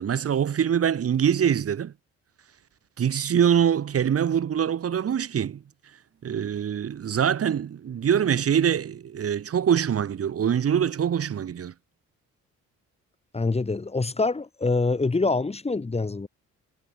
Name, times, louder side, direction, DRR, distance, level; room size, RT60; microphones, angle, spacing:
voice 1, 0.0-1.9 3.0-5.6 6.2-11.7, right 8 dB, 50° right, 1.8 m, -24 dB
voice 2, 13.3-16.3, left 3 dB, 20° left, 1.8 m, -25 dB
cardioid pair, 90°, 30 cm